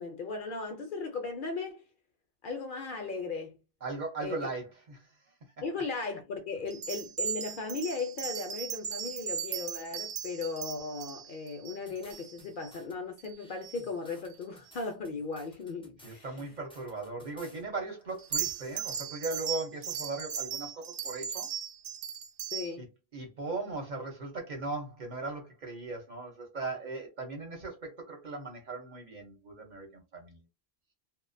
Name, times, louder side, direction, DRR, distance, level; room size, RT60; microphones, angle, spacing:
voice 1, 0.0-1.8 2.4-3.6 4.2-4.4 5.6-16.3 22.5-22.9, left 4 dB, 60° left, 0.6 m, -37 dB
voice 2, 3.8-5.1 16.0-21.5 22.8-22.9 23.1-30.4, right 3 dB, 50° right, 0.8 m, -38 dB
sound 1, 6.7-12.7 13.2-13.3 13.6-13.8 18.2-22.7, right 8 dB, 75° right, 0.8 m, -37 dB
sound 2, 11.9-12.9 13.3-17.6 18.0-18.9, left 1 dB, 10° left, 0.3 m, -57 dB
2.4 x 2.1 x 2.5 m
omnidirectional pair, 1.1 m